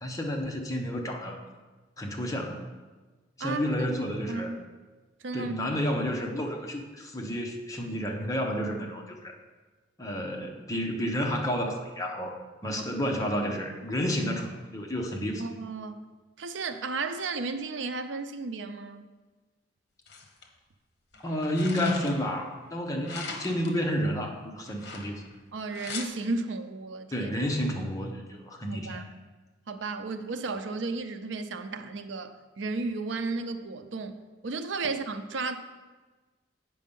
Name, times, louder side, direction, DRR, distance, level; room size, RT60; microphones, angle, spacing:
voice 1, 0.0-1.4 2.0-2.6 3.4-4.5 5.3-9.3 10.0-15.4 21.2-25.2 27.1-29.1, equal, 20° left, 1 dB, 0.9 m, -31 dB
voice 2, 4.3-4.6 5.2-5.6 12.8-12.9 15.4-16.0 16.4-19.1 23.3-23.4 25.5-27.3 28.7-29.1 29.7-35.6, right 3 dB, 85° right, 9 dB, 0.5 m, -34 dB
sound 1, 20.1-20.4 21.1-22.4 23.0-23.8 24.7-25.3 25.7-26.1, left 4 dB, 60° left, 1.0 m, -40 dB
8.4 x 5.4 x 5.4 m, 1.3 s
head